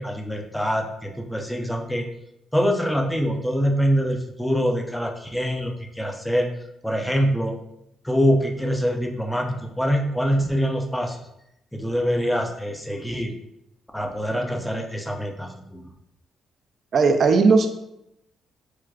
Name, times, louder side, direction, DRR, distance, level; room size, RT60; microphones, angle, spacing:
voice 1, 0.0-2.1 2.5-6.5 6.8-7.6 8.0-11.2 11.7-13.3 13.9-15.9, equal, 5° left, 3 dB, 0.5 m, -24 dB
voice 2, 16.9-17.7, right 4 dB, 55° right, 7 dB, 0.4 m, -17 dB
4.6 x 2.1 x 2.4 m, 0.82 s
cardioid pair, 90°, 0 cm